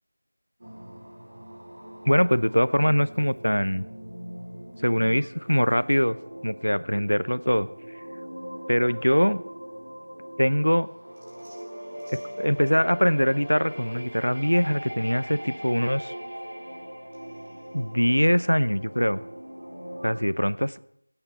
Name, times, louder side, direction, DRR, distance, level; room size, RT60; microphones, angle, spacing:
sound 1, 0.6-20.2, equal, 40° right, 4.3 m, -40 dB
voice 1, 2.1-3.9 4.8-6.2 6.4-7.7 8.7-9.4 10.4-10.9 12.4-16.1 17.7-19.2 20.0-20.8, equal, 80° left, 16 dB, 0.7 m, -22 dB
26.0 x 8.9 x 4.2 m, 0.71 s
figure-of-eight pair, 175°, 0 cm